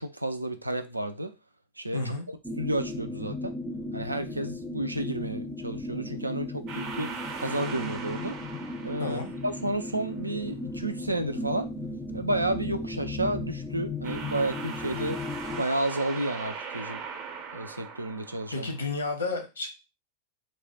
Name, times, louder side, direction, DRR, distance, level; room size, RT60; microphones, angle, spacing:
voice 1, 0.0-1.3 1.8-3.6 3.9-8.4 8.8-11.7 12.1-15.2 15.6-17.0 17.5-18.7, right 1 dB, 85° right, 0.4 m, -31 dB
voice 2, 1.9-2.3 9.0-9.3 18.5-19.7, left 3 dB, 70° left, 0.9 m, -31 dB
sound 1, 2.4-15.6, left 2 dB, 10° left, 0.4 m, -36 dB
sound 2, 6.7-10.0 14.0-18.9, right 6 dB, 40° right, 0.6 m, -40 dB
3.2 x 2.1 x 4.2 m
figure-of-eight pair, 90°, 0 cm